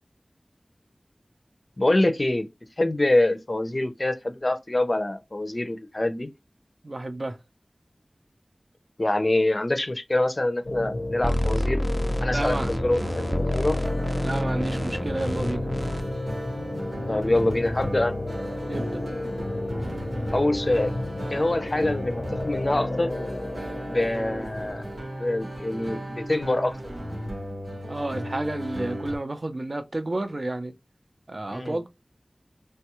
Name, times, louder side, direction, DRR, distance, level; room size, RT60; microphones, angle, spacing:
voice 1, 1.8-2.5 2.8-6.3 9.0-11.8 12.2-13.0 13.4-13.8 17.1-18.2 20.3-20.9 21.3-23.1 23.9-24.9 25.2-26.8 31.5-31.8, left 1 dB, 45° left, 0.5 m, -25 dB
voice 2, 6.8-7.4 12.3-12.7 14.2-15.7 18.7-19.1 27.9-30.7 31.3-31.9, right 2 dB, 55° right, 0.5 m, -31 dB
sound 1, 10.6-25.1, left 1 dB, 90° left, 0.6 m, -33 dB
sound 2, 11.2-16.0, left 1 dB, 10° right, 0.5 m, -28 dB
sound 3, 13.0-29.2, equal, 85° right, 1.0 m, -35 dB
3.3 x 2.3 x 2.9 m
wide cardioid pair, 60°, 0 cm